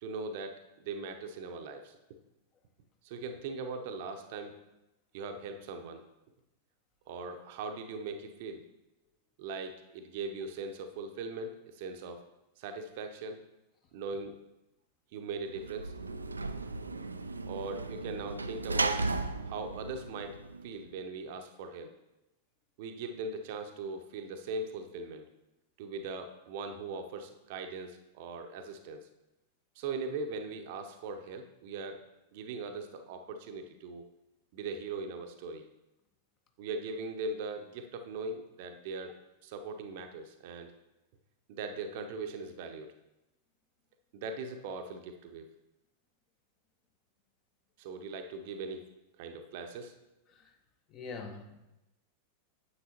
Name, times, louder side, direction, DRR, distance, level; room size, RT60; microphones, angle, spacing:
voice 1, 0.0-2.0 3.0-4.6 5.1-6.0 7.1-8.6 9.4-12.2 12.6-13.4 13.9-14.4 15.1-15.9 17.5-19.1 19.5-20.4 20.6-21.9 22.8-25.2 25.8-29.1 29.8-32.0 32.3-34.0 34.5-35.6 36.6-39.1 39.4-40.7 41.5-42.9 44.1-45.5 47.8-48.8 49.2-49.9, right 3 dB, 50° right, 6 dB, 0.8 m, -40 dB
Sliding door / Slam, 15.5-20.9, right 3 dB, 80° right, 0.4 m, -36 dB
voice 2, 50.9-51.6, left 4 dB, 35° left, 6 dB, 1.0 m, -43 dB
9.6 x 7.4 x 2.9 m, 0.96 s
figure-of-eight pair, 90°, 0 cm